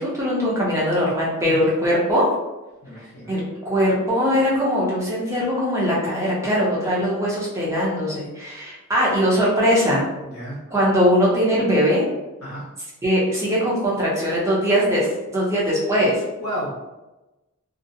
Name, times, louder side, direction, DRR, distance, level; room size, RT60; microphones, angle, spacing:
voice 1, 0.0-2.3 3.3-10.1 10.7-12.0 13.0-16.2, equal, 15° right, -6 dB, 0.6 m, -21 dB
voice 2, 1.5-1.8 2.8-3.3 10.2-10.6 12.4-12.7 16.4-16.9, equal, 75° left, -7 dB, 0.7 m, -32 dB
2.5 x 2.1 x 2.6 m, 1.0 s
head